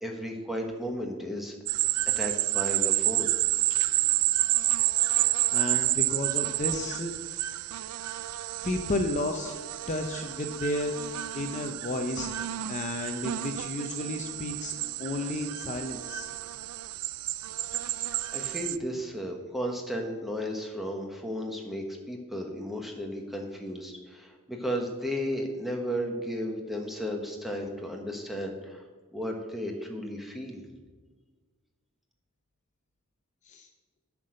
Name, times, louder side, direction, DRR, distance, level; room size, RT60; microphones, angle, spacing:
voice 1, 0.0-1.6 2.1-3.3 18.3-28.8 29.1-30.6, equal, ahead, 1 dB, 1.2 m, -34 dB
sound 1, 1.7-18.8, right 16 dB, 85° right, 0.4 m, -29 dB
voice 2, 5.5-7.1 8.6-9.5 9.9-10.9 11.3-12.3 12.7-14.7 15.0-16.3 33.5-33.7, left 1 dB, 35° left, 4 dB, 0.7 m, -32 dB
9.0 x 6.0 x 6.5 m, 1.4 s
head